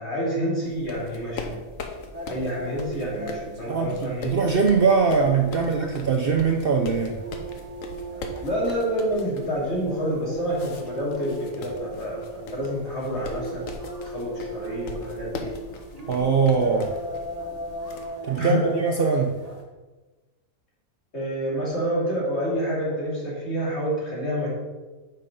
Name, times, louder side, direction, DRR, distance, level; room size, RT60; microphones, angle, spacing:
voice 1, 0.0-1.6 2.3-4.3 8.4-13.8 14.1-15.5 16.7-16.8 18.4-18.7 21.1-24.5, equal, 50° left, -5 dB, 2.9 m, -28 dB
sound 1, 0.6-18.1, left 3 dB, 70° left, 1.3 m, -41 dB
sound 2, 2.1-19.6, right 2 dB, 30° right, 1.4 m, -38 dB
voice 2, 3.7-7.2 16.1-16.9 18.2-19.4, right 5 dB, 55° right, 2 dB, 0.7 m, -22 dB
7.5 x 5.4 x 5.2 m, 1.2 s
omnidirectional pair, 1.5 m